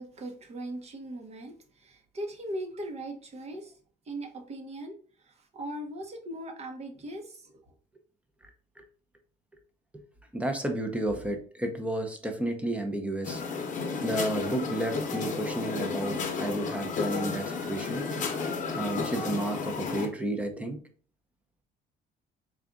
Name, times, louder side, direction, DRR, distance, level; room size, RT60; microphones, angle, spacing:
voice 1, 0.0-3.8 4.0-7.6, right 1 dB, 40° right, 3 dB, 0.9 m, -39 dB
voice 2, 10.3-13.4 14.0-18.1 18.7-20.8, right 1 dB, 5° right, 5 dB, 0.7 m, -31 dB
sound 1, 13.2-20.1, left 4 dB, 50° left, 0.8 m, -32 dB
3.9 x 2.4 x 3.6 m, 0.43 s
cardioid pair, 110°, 17 cm